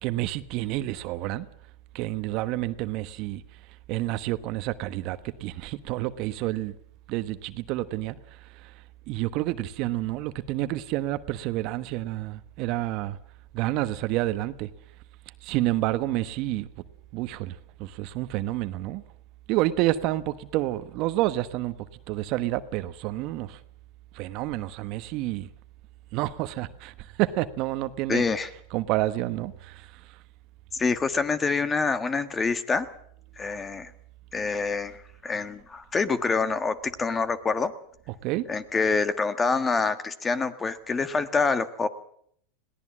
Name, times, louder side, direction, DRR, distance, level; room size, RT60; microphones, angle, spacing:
voice 1, 0.0-1.5 1.9-3.4 3.9-6.8 7.1-8.1 8.6-8.7 9.1-13.2 13.5-14.7 15.4-16.7 17.1-17.5 17.8-19.0 19.5-21.7 22.1-23.6 24.1-25.5 26.1-28.2 28.7-29.9 38.2-38.5, right 16 dB, 50° right, 1.2 m, -29 dB
voice 2, 28.1-28.5 30.7-32.9 33.4-33.9 34.3-37.7 38.5-41.9, left 4 dB, 20° left, 1.6 m, -26 dB
21.5 x 17.5 x 7.5 m
hypercardioid pair, 105°, 0 cm